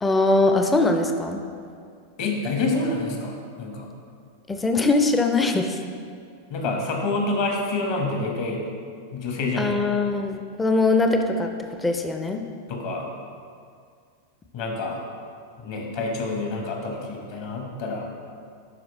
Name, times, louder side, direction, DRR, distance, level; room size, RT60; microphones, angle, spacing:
voice 1, 0.0-1.4 4.5-5.8 9.6-11.5 11.8-12.4, left 3 dB, 10° left, 5 dB, 0.4 m, -21 dB
voice 2, 2.2-3.9 6.5-8.6 9.1-9.8 12.7-13.1 14.5-15.0 15.6-18.1, left 3 dB, 45° left, 1 dB, 1.2 m, -27 dB
10.5 x 4.6 x 3.1 m, 2.2 s
figure-of-eight pair, 90°, 0 cm